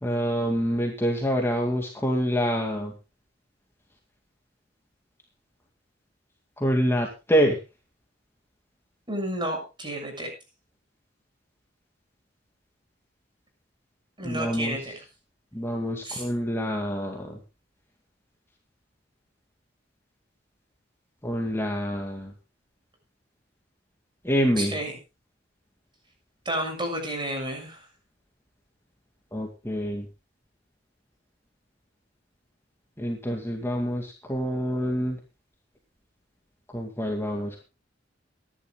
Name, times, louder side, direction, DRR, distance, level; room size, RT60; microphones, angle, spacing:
voice 1, 0.0-2.9 6.6-7.6 14.2-14.8 15.5-17.4 21.2-22.3 24.2-24.8 29.3-30.1 33.0-35.2 36.7-37.6, equal, 15° left, 1 dB, 2.2 m, -26 dB
voice 2, 9.1-10.3 14.2-15.0 16.0-16.2 24.6-25.0 26.4-27.8, right 1 dB, 25° right, 4 dB, 6.7 m, -31 dB
23.5 x 11.5 x 2.3 m, 0.29 s
head